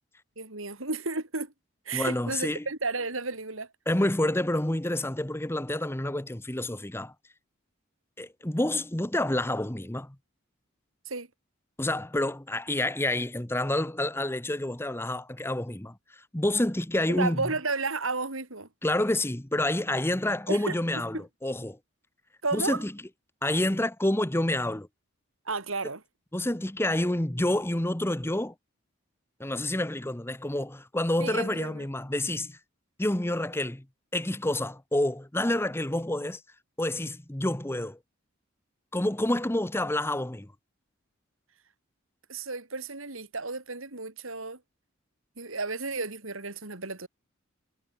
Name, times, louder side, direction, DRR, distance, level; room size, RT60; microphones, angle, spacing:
voice 1, 0.4-1.5 1.9-3.7 11.1-11.3 17.1-18.7 20.5-21.2 22.4-22.8 25.5-26.0 31.2-31.9 42.3-44.6 45.4-47.1, right 3 dB, 75° right, 4.0 m, -33 dB
voice 2, 1.9-2.6 3.9-7.1 8.2-10.2 11.8-17.4 18.8-21.8 22.5-22.9 23.4-24.9 26.3-28.5 29.4-32.6 33.0-33.8 34.1-36.4 36.8-38.0 38.9-40.5, left 1 dB, 10° left, 1.0 m, -28 dB
head